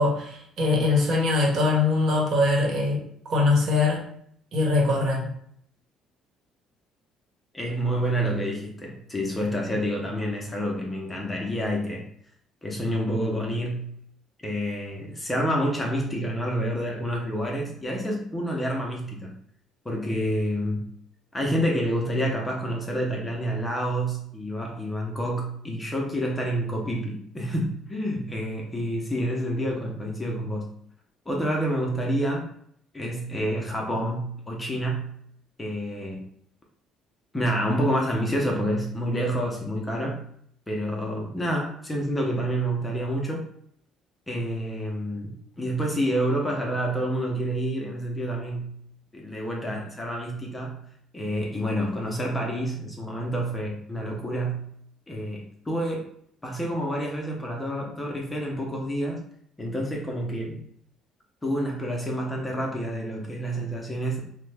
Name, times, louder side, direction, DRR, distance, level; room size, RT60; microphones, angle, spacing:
voice 1, 0.0-3.0 3.3-4.0 4.5-5.3, left 3 dB, 50° right, -1 dB, 1.1 m, -22 dB
voice 2, 7.5-12.0 12.6-13.9 14.4-19.3 19.8-20.9 21.3-30.7 31.3-32.5 32.9-35.1 35.6-36.3 37.3-40.2 40.7-43.5 44.3-48.7 49.1-50.8 51.1-54.7 55.1-56.1 56.4-59.2 59.6-60.6 61.4-64.2, equal, 15° left, -1 dB, 0.6 m, -28 dB
2.9 x 2.1 x 3.3 m, 0.66 s
cardioid pair, 120°, 0 cm